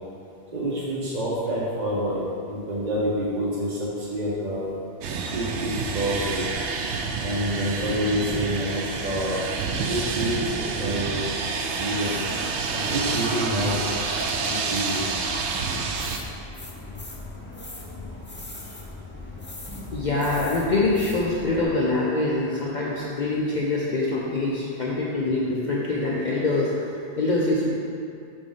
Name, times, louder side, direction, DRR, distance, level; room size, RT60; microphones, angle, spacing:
voice 1, 0.5-4.8 5.3-6.5 7.2-9.4 9.7-11.2 11.8-12.2 12.7-13.9 14.4-15.0, equal, 45° right, -7 dB, 0.9 m, -27 dB
sound 1, 5.0-16.2, right 4 dB, 85° right, 0.9 m, -28 dB
sound 2, 13.6-21.6, left 2 dB, 20° left, 0.3 m, -39 dB
voice 2, 19.9-27.7, left 2 dB, 50° left, -5 dB, 0.7 m, -24 dB
6.1 x 3.5 x 5.3 m, 2.5 s
omnidirectional pair, 1.1 m